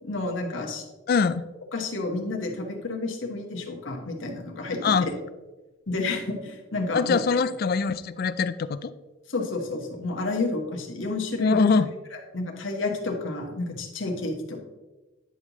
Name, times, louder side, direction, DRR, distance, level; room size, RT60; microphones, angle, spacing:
voice 1, 0.0-0.8 1.7-5.1 5.9-7.2 9.3-11.7 12.3-14.6, left 2 dB, 70° left, 1 dB, 1.3 m, -30 dB
voice 2, 1.1-1.4 4.8-5.1 6.9-8.9 11.4-11.9, left 5 dB, 50° left, 13 dB, 0.4 m, -23 dB
9.9 x 5.5 x 3.0 m, 1.1 s
head